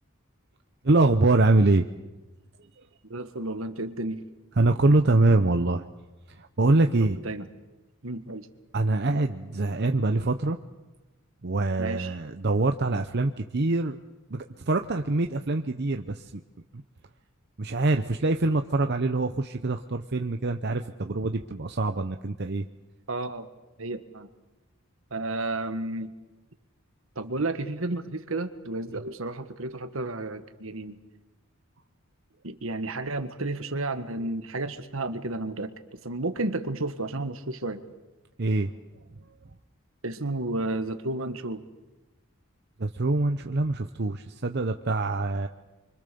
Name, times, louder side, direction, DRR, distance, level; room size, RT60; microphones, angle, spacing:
voice 1, 0.8-1.9 2.8-2.9 4.6-5.8 6.3-7.2 8.7-10.6 11.4-14.0 14.3-16.3 17.6-22.6 38.4-38.7 42.8-45.5, right 2 dB, 50° right, 6 dB, 0.8 m, -24 dB
voice 2, 3.1-4.2 7.2-7.5 8.0-8.5 11.8-12.2 23.1-23.5 23.8-24.3 25.1-26.1 27.1-31.0 32.4-37.8 40.0-41.6, right 2 dB, 70° right, 9 dB, 1.6 m, -32 dB
25.5 x 24.5 x 6.9 m, 1.1 s
head